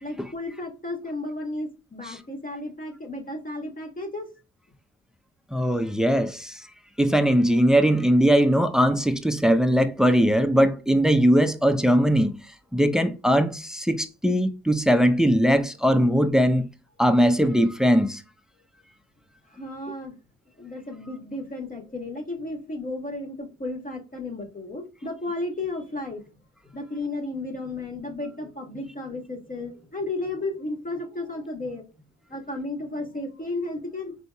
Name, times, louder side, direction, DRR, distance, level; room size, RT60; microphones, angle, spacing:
voice 1, 0.0-4.3 19.6-20.2 20.6-26.2 26.7-31.8 32.3-34.1, left 2 dB, 25° left, 1.6 m, -33 dB
voice 2, 5.5-6.6 7.0-12.4 12.7-16.7 17.0-18.2, equal, ahead, 0.6 m, -20 dB
4.7 x 3.9 x 2.3 m
hypercardioid pair, 55°, 33 cm